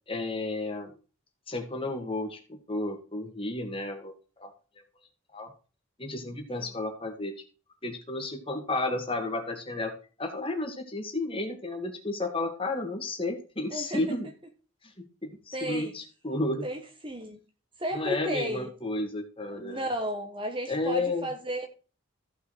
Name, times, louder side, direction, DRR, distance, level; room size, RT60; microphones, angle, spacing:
voice 1, 0.1-0.9 1.5-4.1 4.4-4.5 5.3-5.5 6.0-7.3 7.8-9.9 10.2-14.3 15.2-16.7 17.9-19.9 20.7-21.3, left 2 dB, 25° left, 4 dB, 2.0 m, -32 dB
voice 2, 13.7-14.0 15.5-15.9 16.6-17.4 17.8-18.7 19.5-21.7, equal, 25° right, 6 dB, 1.2 m, -33 dB
15.0 x 5.5 x 4.8 m, 0.36 s
head